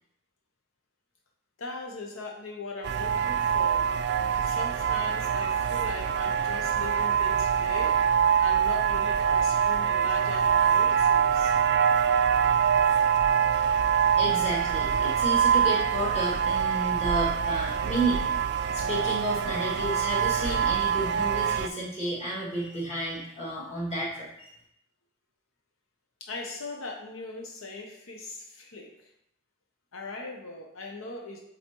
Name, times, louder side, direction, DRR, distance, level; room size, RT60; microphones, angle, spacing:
voice 1, 1.6-3.9 4.4-8.1 8.4-11.6 26.2-29.1 29.9-31.4, left 3 dB, 90° left, 1 dB, 0.8 m, -39 dB
sound 1, 2.8-21.7, right 7 dB, 55° right, 0.3 m, -24 dB
voice 2, 14.2-18.4 18.7-24.5, right 1 dB, 30° left, -6 dB, 2.1 m, -31 dB
7.8 x 4.1 x 3.0 m, 0.76 s
head